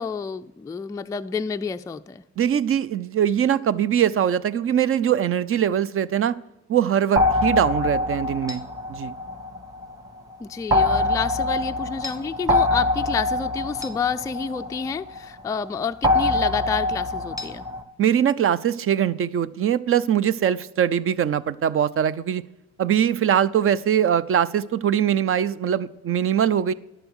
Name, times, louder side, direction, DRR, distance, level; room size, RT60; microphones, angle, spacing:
voice 1, 0.0-2.2 10.4-17.7, left 5 dB, 10° left, 0.3 m, -29 dB
voice 2, 2.4-6.4 6.7-8.6 8.9-9.1 18.0-22.4 22.8-26.7, right 9 dB, 45° right, 0.5 m, -22 dB
sound 1, 7.2-9.9 10.7-15.2 16.0-17.8, left 2 dB, 10° right, 1.0 m, -24 dB
11.0 x 6.8 x 6.3 m
cardioid pair, 90°, 30 cm